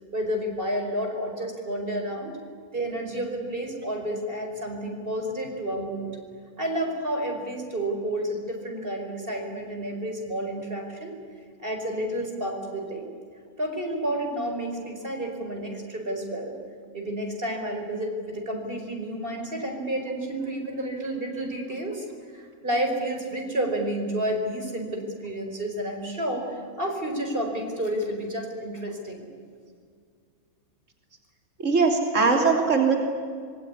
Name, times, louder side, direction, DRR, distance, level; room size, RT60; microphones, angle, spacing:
voice 1, 0.1-2.4 2.7-6.2 6.6-11.2 11.6-13.1 13.6-16.6 16.9-22.1 22.3-29.3, right 1 dB, 40° right, 3 dB, 5.2 m, -30 dB
voice 2, 31.6-33.0, right 4 dB, 60° right, 2 dB, 3.6 m, -20 dB
26.5 x 23.0 x 9.8 m, 2.1 s
omnidirectional pair, 1.5 m